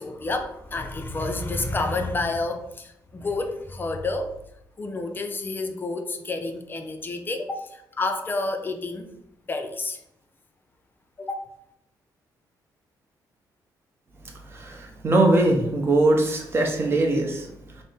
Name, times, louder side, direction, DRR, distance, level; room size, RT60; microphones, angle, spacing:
voice 1, 0.0-4.3 4.8-9.1 9.5-10.0 11.2-11.4, left 2 dB, 25° left, 5 dB, 0.4 m, -29 dB
voice 2, 14.5-17.5, right 2 dB, 30° right, 2 dB, 0.6 m, -21 dB
4.1 x 2.0 x 3.3 m, 0.80 s
cardioid pair, 125°, 8 cm